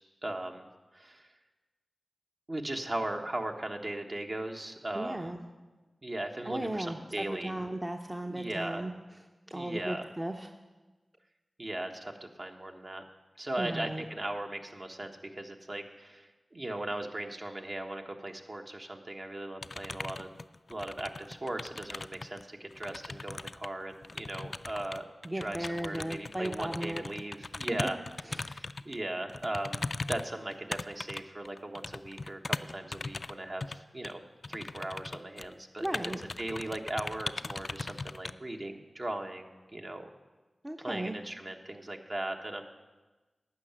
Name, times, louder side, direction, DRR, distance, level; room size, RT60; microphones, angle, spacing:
voice 1, 0.2-0.7 0.9-1.3 2.5-5.3 6.0-7.5 8.2-8.9 9.5-10.1 11.6-13.0 13.4-20.3 20.7-25.1 25.3-28.0 28.4-29.8 30.1-34.2 34.5-35.9 36.4-40.1 40.8-42.7, right 1 dB, 45° right, 3 dB, 1.2 m, -38 dB
voice 2, 4.9-5.5 6.5-8.9 9.5-10.5 13.6-14.0 25.2-27.0 27.7-27.9 28.3-28.4 35.8-36.2 40.6-41.1, right 1 dB, 20° right, 4 dB, 0.7 m, -36 dB
sound 1, 19.6-22.4 22.7-29.0 29.3-33.3 33.6-33.8 34.0-34.1 34.4-35.5 35.8-38.3, left 3 dB, 55° left, 0.3 m, -39 dB
11.0 x 5.8 x 8.8 m, 1.2 s
cardioid pair, 40°, 0 cm